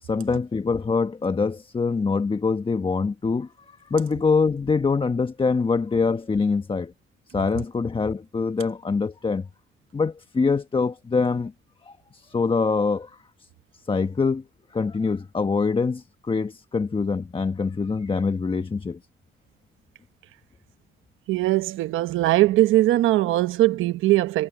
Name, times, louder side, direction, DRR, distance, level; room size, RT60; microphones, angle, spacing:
voice 1, 0.0-6.9 7.3-9.5 9.9-11.5 11.8-13.1 13.9-14.4 14.7-19.0, left 4 dB, 25° left, 1.2 m, -24 dB
voice 2, 21.3-24.5, right 16 dB, 90° right, 1.0 m, -20 dB
cardioid pair, 90°, 20 cm